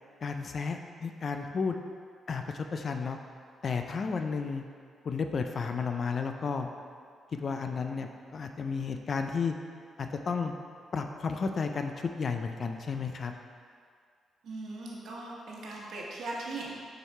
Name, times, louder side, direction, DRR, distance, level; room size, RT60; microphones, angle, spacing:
voice 1, 0.2-1.8 2.3-3.2 3.6-4.6 5.0-6.7 7.3-9.5 10.0-10.6 10.9-13.3, left 5 dB, 40° left, 5 dB, 0.4 m, -32 dB
voice 2, 14.4-16.7, right 2 dB, 65° right, -3 dB, 1.3 m, -39 dB
6.5 x 4.8 x 4.2 m, 2.1 s
cardioid pair, 145°, 0 cm